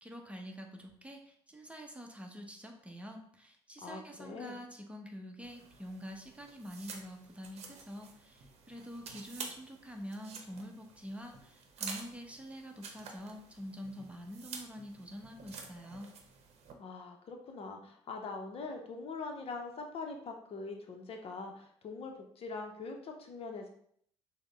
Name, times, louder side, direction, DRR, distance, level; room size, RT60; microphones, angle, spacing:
voice 1, 0.0-16.1, equal, 10° right, 2 dB, 0.9 m, -46 dB
voice 2, 3.8-4.6 16.8-23.7, left 3 dB, 40° left, 3 dB, 0.7 m, -43 dB
sound 1, 5.4-16.7, right 5 dB, 45° right, 0.9 m, -49 dB
6.3 x 2.1 x 3.5 m, 0.65 s
figure-of-eight pair, 55°, 15 cm